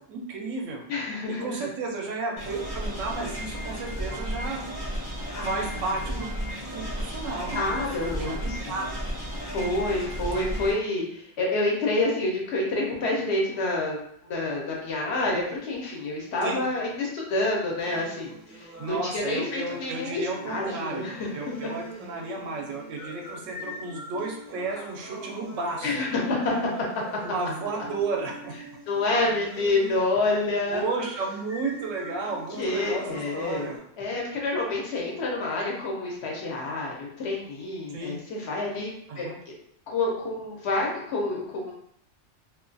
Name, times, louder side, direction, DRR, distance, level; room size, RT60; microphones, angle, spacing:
voice 1, 0.0-0.8 1.3-4.7 5.5-6.3 6.7-8.9 16.4-16.6 18.8-26.0 27.2-28.5 30.7-33.8 37.9-38.2 39.1-39.4, right 3 dB, 80° right, 1 dB, 0.9 m, -33 dB
voice 2, 0.9-1.6 5.3-5.8 7.5-8.4 8.6-8.7 9.5-21.7 25.8-26.7 28.9-30.8 32.6-33.7 34.0-39.5 39.9-41.7, left 2 dB, 65° left, -2 dB, 0.8 m, -28 dB
sound 1, 2.4-10.8, equal, 25° left, 0.6 m, -34 dB
sound 2, 17.8-33.8, right 1 dB, 20° right, 0.5 m, -44 dB
2.4 x 2.2 x 2.5 m, 0.70 s
omnidirectional pair, 1.3 m